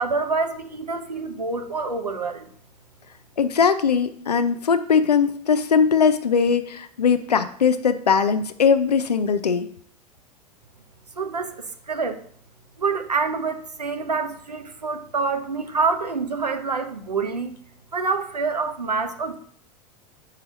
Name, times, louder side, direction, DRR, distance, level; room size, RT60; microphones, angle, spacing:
voice 1, 0.0-2.5 11.2-12.2 12.8-17.5 17.9-19.4, right 4 dB, 90° right, 7 dB, 0.8 m, -26 dB
voice 2, 3.4-9.7, left 6 dB, 85° left, 10 dB, 0.5 m, -20 dB
4.7 x 4.7 x 4.9 m, 0.62 s
figure-of-eight pair, 85°, 20 cm